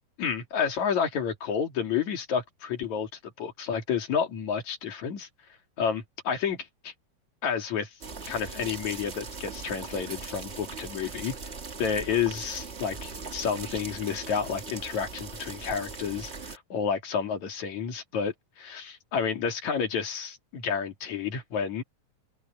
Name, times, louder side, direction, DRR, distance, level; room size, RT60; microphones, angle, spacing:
voice 1, 0.2-5.3 5.8-6.9 7.4-7.9 8.3-11.3 11.8-21.8, left 7 dB, 60° left, 3.8 m, -30 dB
sound 1, 8.0-16.6, right 4 dB, 75° right, 0.6 m, -40 dB
open air
omnidirectional pair, 3.7 m